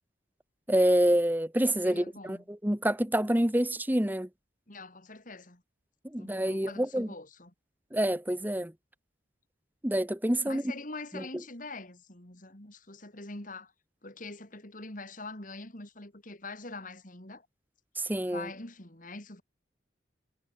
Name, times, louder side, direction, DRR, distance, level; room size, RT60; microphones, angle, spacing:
voice 1, 0.7-4.3 6.1-7.1 7.9-8.7 9.8-10.6 11.1-11.2 18.0-18.5, right 1 dB, 10° right, 1.4 m, -27 dB
voice 2, 1.8-2.4 4.7-5.6 6.2-7.5 10.4-13.7 14.0-17.5 18.2-19.4, left 2 dB, 45° left, 3.5 m, -44 dB
head